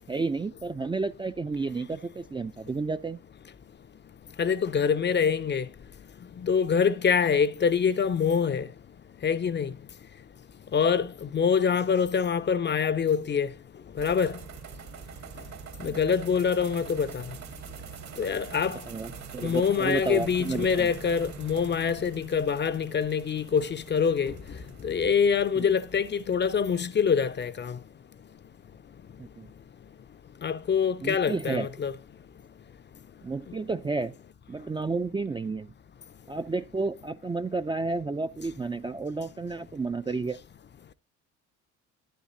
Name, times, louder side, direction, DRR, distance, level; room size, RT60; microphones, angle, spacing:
voice 1, 0.1-3.2 15.8-16.0 18.9-20.9 25.6-25.7 29.2-29.5 31.0-31.7 33.2-34.1 34.5-35.7 36.3-40.4, right 3 dB, 15° right, 0.4 m, -31 dB
voice 2, 4.4-5.7 6.4-8.7 9.2-9.7 10.7-13.5 14.0-14.4 15.8-17.2 18.2-18.8 19.4-24.3 24.8-27.8 30.4-31.9, left 6 dB, 30° left, 0.6 m, -25 dB
sound 1, 14.0-27.5, right 8 dB, 45° right, 1.2 m, -45 dB
10.5 x 9.7 x 2.7 m
hypercardioid pair, 60°, 38 cm